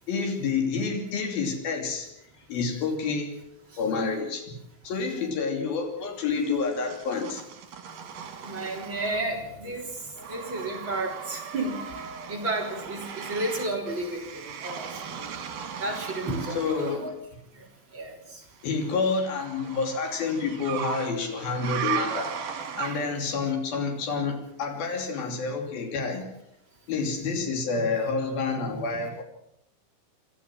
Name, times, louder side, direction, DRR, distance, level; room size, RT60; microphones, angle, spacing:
voice 1, 0.1-2.1 2.5-3.4 3.8-4.5 4.8-7.4 10.2-10.4 16.5-17.1 18.6-26.2 26.9-29.2, left 4 dB, 90° left, 2 dB, 4.8 m, -29 dB
sound 1, 6.4-9.5 9.8-17.1 18.6-23.3, right 8 dB, 85° right, 4.4 m, -37 dB
voice 2, 8.4-10.0 10.3-15.3 15.8-17.1 17.9-18.4, right 2 dB, 35° right, 0 dB, 4.1 m, -32 dB
27.0 x 13.5 x 7.5 m, 0.79 s
omnidirectional pair, 4.1 m